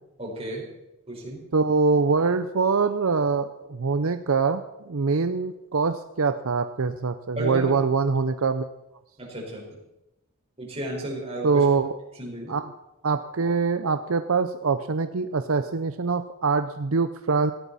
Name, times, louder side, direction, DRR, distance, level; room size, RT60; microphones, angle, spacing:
voice 1, 0.2-0.7 1.1-1.4 7.4-7.7 9.2-9.7 10.6-11.6 12.2-12.6, right 1 dB, 25° right, -2 dB, 4.9 m, -33 dB
voice 2, 1.5-8.7 11.4-12.0 12.5-12.7 13.0-17.5, right 4 dB, 70° right, 10 dB, 0.6 m, -24 dB
18.5 x 16.0 x 4.2 m, 0.94 s
head